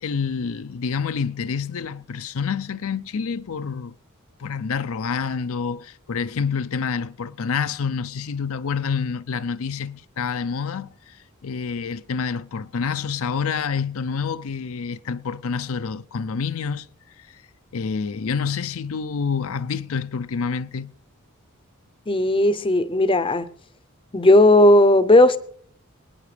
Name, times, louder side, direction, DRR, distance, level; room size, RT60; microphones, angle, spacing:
voice 1, 0.0-4.0 4.4-16.9 17.2-17.4 17.7-20.9, left 5 dB, 70° left, 0.5 m, -28 dB
voice 2, 22.1-23.5 24.1-25.4, left 1 dB, 25° left, 0.6 m, -15 dB
26.5 x 9.5 x 3.3 m
head